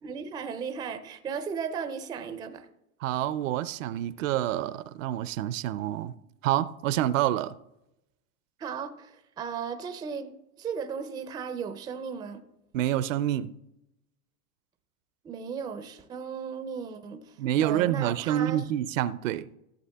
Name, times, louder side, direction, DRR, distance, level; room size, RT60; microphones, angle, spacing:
voice 1, 0.0-2.7 8.6-10.3 10.6-12.4 15.2-18.7, right 6 dB, 10° right, 0.4 m, -36 dB
voice 2, 3.0-6.1 6.4-7.5 12.7-13.5 17.4-19.5, right 12 dB, 60° right, 0.5 m, -27 dB
14.5 x 7.6 x 2.3 m
hypercardioid pair, 105°, 44 cm